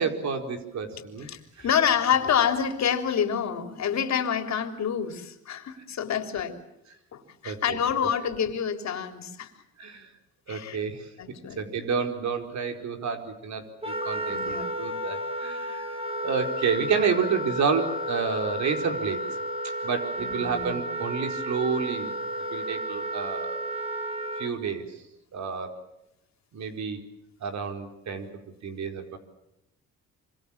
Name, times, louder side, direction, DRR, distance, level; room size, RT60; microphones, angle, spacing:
voice 1, 0.0-1.3 1.6-1.7 7.4-7.8 9.8-10.1 10.5-11.1 11.6-15.9 16.2-19.2 19.8-22.1 22.5-23.7 24.4-24.8 25.3-25.8 26.5-27.0 27.4-28.3 28.6-29.2, right 6 dB, 65° right, 5 dB, 4.8 m, -30 dB
voice 2, 1.3-6.6 7.1-9.5 10.5-10.8 11.2-11.6 14.3-14.7 20.2-20.8, left 8 dB, 65° left, 7 dB, 3.7 m, -27 dB
Wind instrument woodwind instrument, 13.8-24.5, right 1 dB, 20° right, 4.2 m, -32 dB
26.0 x 25.0 x 7.4 m, 0.86 s
cardioid pair, 90°, 30 cm